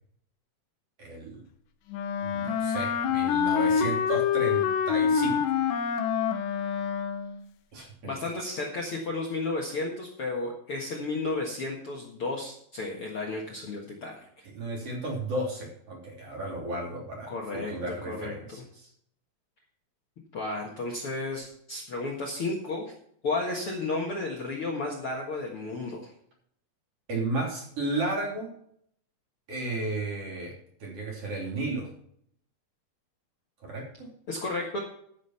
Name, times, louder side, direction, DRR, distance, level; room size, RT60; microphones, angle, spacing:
voice 1, 1.0-1.4 2.2-5.4 7.7-8.1 14.5-18.9 27.1-28.5 29.5-31.9 33.6-34.1, right 2 dB, 45° right, -2 dB, 3.9 m, -33 dB
Wind instrument woodwind instrument, 1.9-7.4, left 7 dB, 75° left, 2.3 m, -26 dB
voice 2, 8.0-14.2 17.3-17.7 18.1-18.6 20.3-22.8 23.2-26.1 34.3-34.8, left 3 dB, 50° left, -1 dB, 1.9 m, -33 dB
13.0 x 6.3 x 5.7 m, 0.67 s
omnidirectional pair, 4.2 m